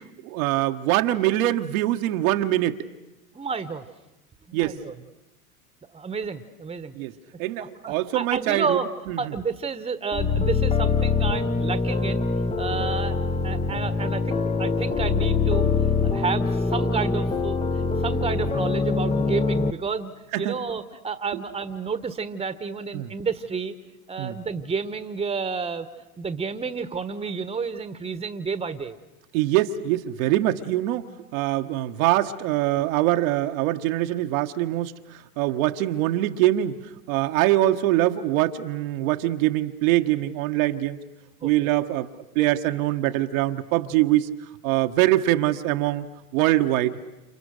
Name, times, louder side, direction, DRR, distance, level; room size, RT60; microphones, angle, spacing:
voice 1, 0.0-2.8 4.5-4.8 6.9-7.1 7.4-8.8 9.1-9.3 12.7-12.9 20.3-20.6 22.9-23.1 24.2-24.4 29.3-41.0 41.4-42.1 42.3-44.3 44.6-46.1 46.3-47.0, right 15 dB, 60° right, 6 dB, 1.4 m, -23 dB
voice 2, 3.3-3.8 4.5-5.0 5.9-6.9 7.6-8.9 9.2-12.3 12.6-13.1 13.4-15.7 16.1-20.1 20.4-23.7 24.1-25.9 26.2-29.0 41.4-41.5, right 5 dB, 10° right, 12 dB, 1.4 m, -30 dB
sound 1, 10.1-19.7, left 4 dB, 10° left, 1.0 m, -24 dB
30.0 x 28.5 x 6.6 m, 0.98 s
hypercardioid pair, 95°, 47 cm